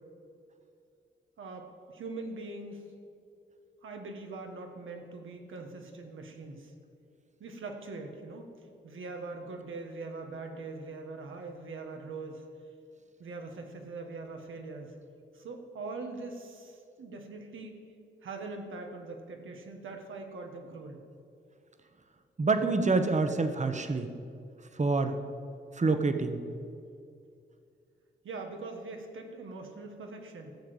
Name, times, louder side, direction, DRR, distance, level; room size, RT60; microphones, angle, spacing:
voice 1, 1.4-2.8 3.8-6.7 7.4-8.5 8.8-12.4 13.2-14.9 15.3-17.8 18.2-21.0 28.2-30.5, right 3 dB, 90° right, 3 dB, 1.7 m, -42 dB
voice 2, 22.4-24.1 24.8-25.1 25.8-26.4, right 3 dB, 35° right, 8 dB, 1.2 m, -26 dB
14.5 x 6.8 x 8.1 m, 2.5 s
cardioid pair, 75°, 20 cm